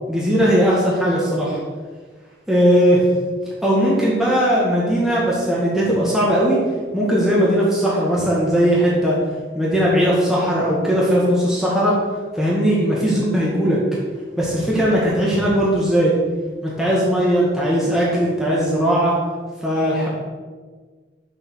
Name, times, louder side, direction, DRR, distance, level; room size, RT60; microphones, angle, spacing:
voice 1, 0.1-1.6 2.5-3.0 3.6-6.6 6.9-9.2 9.5-12.0 12.3-13.8 14.4-16.1 16.6-19.1 19.6-20.1, equal, ahead, -7 dB, 1.9 m, -18 dB
7.2 x 7.1 x 6.5 m, 1.4 s
head